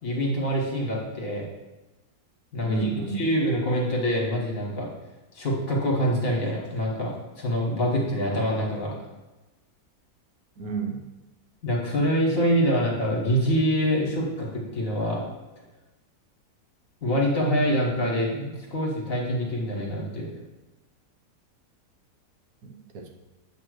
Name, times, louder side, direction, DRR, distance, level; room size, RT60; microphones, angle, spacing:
voice 1, 0.0-1.5 2.5-4.9 5.3-9.0 11.6-15.2 17.0-20.3, equal, 55° left, -3 dB, 1.8 m, -25 dB
voice 2, 2.6-3.2 10.6-11.1 22.6-23.1, right 6 dB, 65° right, 2 dB, 1.2 m, -32 dB
8.0 x 3.0 x 6.3 m, 1.1 s
omnidirectional pair, 1.8 m